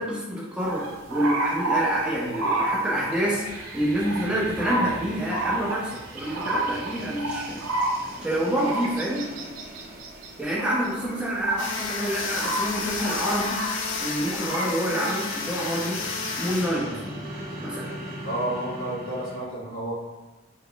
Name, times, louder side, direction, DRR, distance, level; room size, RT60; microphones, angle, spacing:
voice 1, 0.0-7.6 8.2-9.2 10.4-13.6 14.0-16.0 16.4-17.0 17.6-17.9, equal, 5° right, -5 dB, 0.5 m, -27 dB
sound 1, 0.6-3.4 4.1-4.3 4.6-5.0 5.3-11.9 12.2-13.8 14.2-14.7, right 2 dB, 90° right, 0.5 m, -29 dB
sound 2, 2.5-19.4, right 1 dB, 45° right, 0.7 m, -41 dB
sound 3, 11.6-17.6, left 4 dB, 65° left, 0.4 m, -32 dB
voice 2, 18.2-19.9, right 1 dB, 80° left, -5 dB, 1.0 m, -31 dB
3.5 x 3.3 x 2.3 m, 1.1 s
head